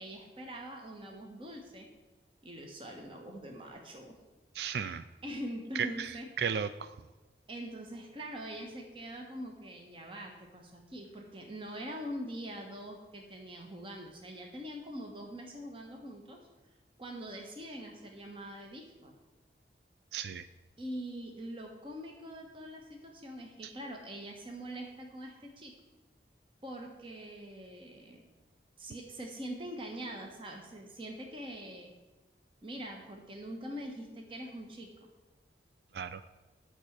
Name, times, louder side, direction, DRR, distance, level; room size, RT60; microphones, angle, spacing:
voice 1, 0.0-1.9 2.4-4.1 5.2-6.3 7.5-16.4 17.0-19.1 20.8-25.7 26.6-28.3 28.8-31.9 32.6-35.1, equal, 30° right, 2 dB, 1.3 m, -43 dB
voice 2, 4.5-5.0 5.8-6.1 6.4-6.9 20.1-20.5 35.9-36.3, right 7 dB, 70° right, 12 dB, 0.4 m, -34 dB
9.0 x 6.1 x 8.1 m, 1.2 s
head